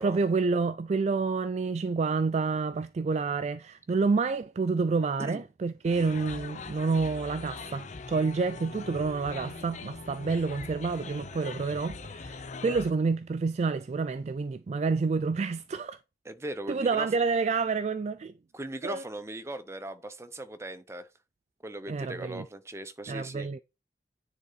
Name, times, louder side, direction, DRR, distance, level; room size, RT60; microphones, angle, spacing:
voice 1, 0.0-16.0 16.7-18.3 18.8-19.0 21.9-22.5 23.1-23.6, right 4 dB, 35° right, 0.3 m, -28 dB
sound 1, 5.8-12.9, left 4 dB, 40° left, 0.6 m, -42 dB
voice 2, 16.2-17.1 18.5-21.1 21.6-23.5, right 1 dB, 15° right, 0.7 m, -39 dB
9.7 x 3.8 x 4.0 m
head